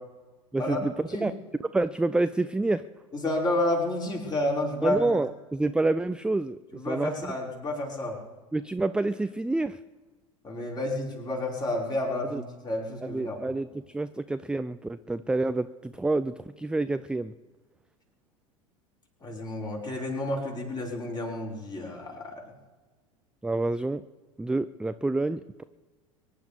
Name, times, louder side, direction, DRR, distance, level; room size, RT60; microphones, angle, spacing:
voice 1, 0.5-1.3 1.7-2.8 4.8-6.6 6.9-7.3 8.5-9.8 12.3-12.4 13.1-17.3 23.4-24.0 24.4-25.6, right 2 dB, 5° right, 13 dB, 0.4 m, -28 dB
voice 2, 3.1-5.1 6.7-8.2 10.4-13.4 19.2-22.4, left 1 dB, 25° left, -2 dB, 5.3 m, -30 dB
24.0 x 11.0 x 5.1 m, 1.3 s
figure-of-eight pair, 80°, 17 cm